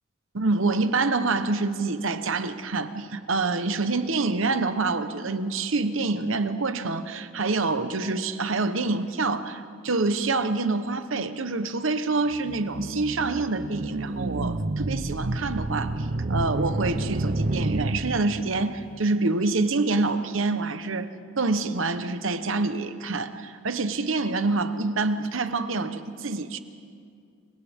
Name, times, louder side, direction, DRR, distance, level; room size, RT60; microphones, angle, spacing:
voice 1, 0.3-21.1 21.4-26.6, right 3 dB, 70° right, 10 dB, 1.0 m, -26 dB
sound 1, 12.3-18.7, right 2 dB, 45° right, 0.7 m, -29 dB
29.5 x 24.5 x 3.6 m, 2.3 s
head